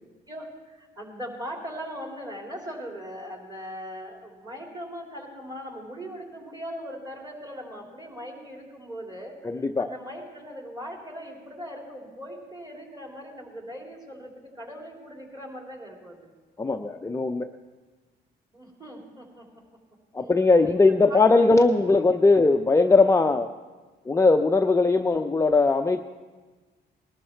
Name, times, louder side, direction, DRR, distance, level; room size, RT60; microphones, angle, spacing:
voice 1, 0.3-16.3 18.5-19.5 20.2-20.3 20.6-21.7 22.1-22.4, equal, 20° right, 0 dB, 3.6 m, -40 dB
voice 2, 9.4-9.9 16.6-17.5 20.1-23.5 24.1-26.0, left 3 dB, 15° left, 5 dB, 0.6 m, -20 dB
19.5 x 12.5 x 4.5 m, 1.3 s
cardioid pair, 90°, 20 cm